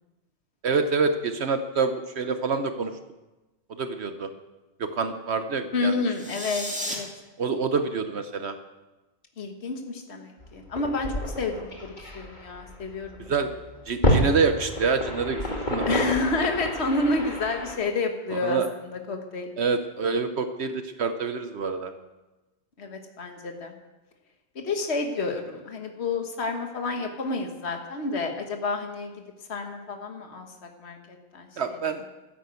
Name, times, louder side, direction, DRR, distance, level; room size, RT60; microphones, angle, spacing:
voice 1, 0.6-2.9 3.7-4.3 4.8-6.0 7.4-8.6 13.3-13.5 13.9-16.0 18.4-18.7 19.6-21.9 31.6-32.0, right 4 dB, 70° right, 8 dB, 1.1 m, -26 dB
voice 2, 5.7-7.1 9.4-13.3 15.9-19.5 22.8-23.7 24.5-29.1 29.5-31.8, left 3 dB, 70° left, 4 dB, 1.7 m, -30 dB
sound 1, 6.1-7.0, equal, 5° right, 2.5 m, -33 dB
sound 2, 10.4-17.7, equal, 40° left, 2.3 m, -29 dB
13.5 x 10.5 x 8.2 m, 1.1 s
omnidirectional pair, 1.2 m